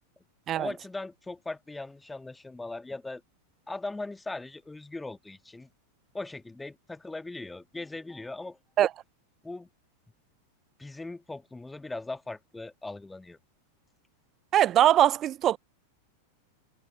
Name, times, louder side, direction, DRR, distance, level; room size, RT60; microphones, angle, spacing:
voice 1, 0.5-3.2 3.7-5.7 6.1-8.6 9.4-9.7 10.8-13.4, left 2 dB, 10° left, 1.7 m, -39 dB
voice 2, 14.5-15.6, right 11 dB, 30° right, 0.3 m, -21 dB
figure-of-eight pair, 90°, 0 cm